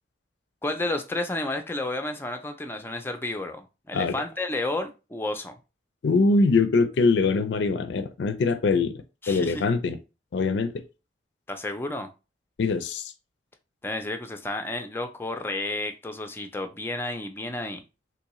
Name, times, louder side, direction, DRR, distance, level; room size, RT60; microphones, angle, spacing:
voice 1, 0.6-5.6 9.2-9.6 11.5-12.1 13.8-17.8, left 2 dB, 10° left, 0.3 m, -31 dB
voice 2, 6.0-8.9 9.3-10.0 10.3-10.7 12.6-13.1, left 3 dB, 80° left, 0.4 m, -23 dB
3.6 x 3.0 x 3.0 m
head